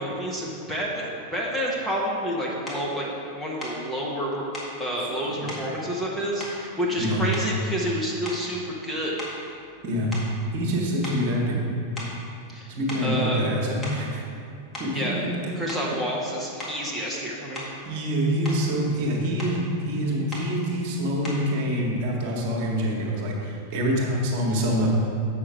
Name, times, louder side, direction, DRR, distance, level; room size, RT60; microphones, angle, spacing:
voice 1, 0.0-3.1 3.3-4.4 4.8-9.1 12.5-12.7 13.0-13.4 14.9-15.2 15.6-17.6, equal, ahead, -6 dB, 1.2 m, -29 dB
sound 1, 2.7-2.9 3.6-3.8 4.5-4.8 5.5-5.7 6.4-7.0 7.3-7.7 8.2-8.6 9.2-10.7 11.0-11.3 12.0-12.2 12.9-13.1 13.6-14.1 14.7-15.0 15.7-15.9 16.6-16.8 17.5-17.8 18.2-18.7 19.4-19.6 20.3-20.5 21.2-21.5, left 1 dB, 20° left, 1.9 m, -38 dB
voice 2, 10.5-11.6 12.7-14.2 14.8-15.2 17.8-24.9, equal, 45° right, -2 dB, 1.5 m, -26 dB
7.7 x 6.1 x 4.9 m, 2.5 s
figure-of-eight pair, 90°, 0 cm